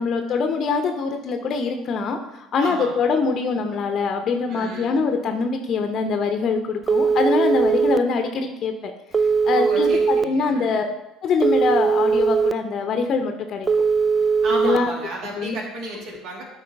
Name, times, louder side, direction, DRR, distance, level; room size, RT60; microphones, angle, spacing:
voice 1, 0.0-8.9 9.4-10.9 11.2-13.7 14.5-14.9 15.3-15.5, left 4 dB, 45° left, 6 dB, 0.8 m, -23 dB
voice 2, 2.6-3.0 4.5-5.0 9.5-10.8 14.4-16.4, right 2 dB, 55° right, -1 dB, 2.1 m, -33 dB
Telephone, 6.9-8.0 9.1-10.2 11.4-12.5 13.7-14.8, right 5 dB, 25° right, 0.3 m, -19 dB
12.5 x 4.6 x 3.5 m, 0.92 s
figure-of-eight pair, 60°, 0 cm